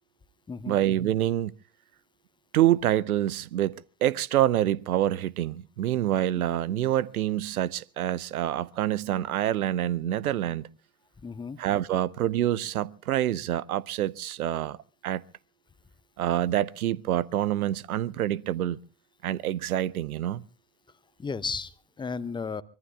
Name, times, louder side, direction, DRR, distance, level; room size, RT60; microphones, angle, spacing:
voice 1, 0.7-1.5 2.5-10.7 11.6-14.8 15.0-15.2 16.2-18.8 19.2-20.4, right 12 dB, 70° right, 0.7 m, -26 dB
voice 2, 11.2-11.6 21.2-22.6, left 5 dB, 10° left, 0.7 m, -34 dB
24.5 x 22.0 x 2.4 m
figure-of-eight pair, 70°, 46 cm